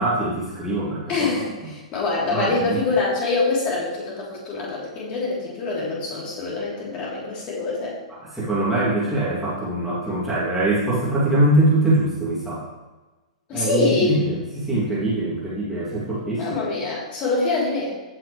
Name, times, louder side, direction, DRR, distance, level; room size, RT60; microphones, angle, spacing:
voice 1, 0.0-1.1 1.6-1.7 2.3-2.8 8.1-12.6 13.5-16.5, right 1 dB, 5° right, -10 dB, 2.8 m, -23 dB
voice 2, 1.1-1.5 1.9-8.0 13.5-14.2 16.4-17.9, left 3 dB, 30° left, -6 dB, 3.5 m, -24 dB
16.0 x 6.1 x 3.3 m, 1.2 s
figure-of-eight pair, 110°, 4 cm